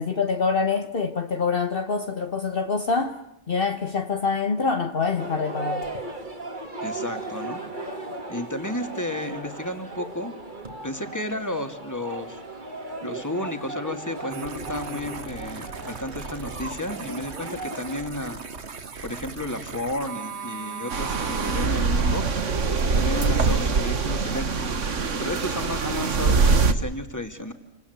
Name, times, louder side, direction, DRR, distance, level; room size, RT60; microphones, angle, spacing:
voice 1, 0.0-3.2 3.5-5.8, left 4 dB, 50° left, 1.4 m, -25 dB
sound 1, 5.2-18.1, right 2 dB, 40° right, 2.5 m, -36 dB
voice 2, 6.8-7.6 8.3-10.3 10.8-12.4 13.0-18.4 19.0-22.2 22.6-24.9 25.2-27.5, left 1 dB, 15° left, 2.6 m, -32 dB
sound 2, 14.3-21.7, right 5 dB, 65° right, 1.7 m, -38 dB
sound 3, 20.9-26.7, right 4 dB, 85° right, 1.9 m, -23 dB
28.5 x 25.5 x 8.3 m
omnidirectional pair, 1.2 m